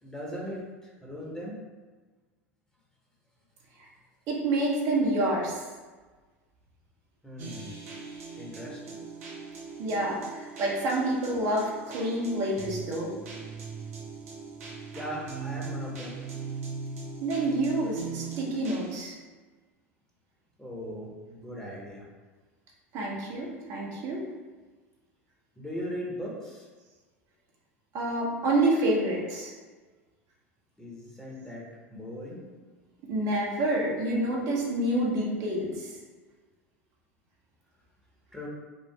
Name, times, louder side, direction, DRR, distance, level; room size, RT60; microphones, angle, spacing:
voice 1, 0.0-1.6 7.2-7.7 8.4-8.9 14.9-16.2 20.6-22.1 25.6-26.7 30.8-32.7 38.3-38.5, equal, 10° left, -4 dB, 1.4 m, -39 dB
voice 2, 4.3-5.7 9.8-13.1 17.2-19.1 22.9-24.2 27.9-29.5 33.1-35.9, right 1 dB, 50° right, -3 dB, 1.2 m, -28 dB
sound 1, 7.4-19.0, right 4 dB, 75° right, 1.0 m, -40 dB
5.3 x 2.4 x 3.6 m, 1.3 s
hypercardioid pair, 80°, 8 cm